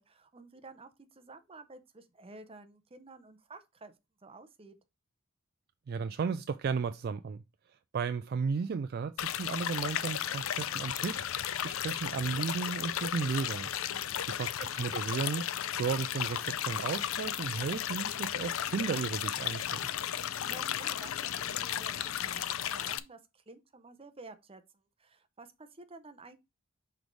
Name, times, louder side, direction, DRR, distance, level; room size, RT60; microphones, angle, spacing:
voice 1, 0.0-3.9 4.2-4.8 13.9-14.4 20.2-26.4, right 3 dB, 25° right, 0.7 m, -52 dB
voice 2, 5.9-7.4 7.9-11.2 11.6-13.7 14.3-15.5 15.7-19.8, right 5 dB, 45° right, 0.3 m, -34 dB
sound 1, 9.2-23.0, left 10 dB, 70° left, 0.5 m, -34 dB
6.1 x 3.4 x 4.6 m
head